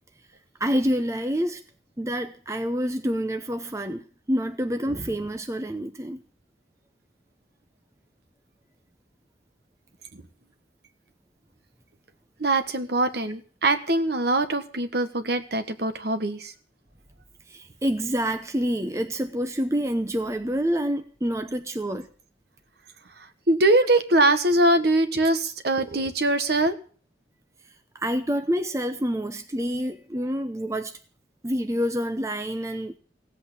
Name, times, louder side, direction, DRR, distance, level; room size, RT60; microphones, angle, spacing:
voice 1, 0.6-1.6 2.0-6.2 17.5-22.1 27.9-31.0 31.4-33.0, equal, 15° right, 0.8 m, -27 dB
voice 2, 12.4-16.5 23.2-26.7, right 2 dB, 55° right, 1.4 m, -22 dB
17.0 x 8.3 x 8.4 m
head